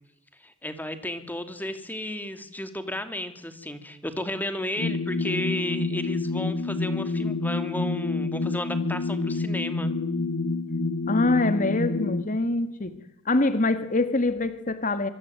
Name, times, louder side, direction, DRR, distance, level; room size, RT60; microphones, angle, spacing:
voice 1, 0.4-9.9, left 1 dB, 10° left, 9 dB, 2.6 m, -33 dB
sound 1, 4.8-12.2, left 3 dB, 70° left, 2.0 m, -28 dB
voice 2, 11.1-12.9 13.3-15.1, left 2 dB, 40° left, 10 dB, 2.0 m, -24 dB
25.5 x 25.0 x 9.2 m, 0.77 s
head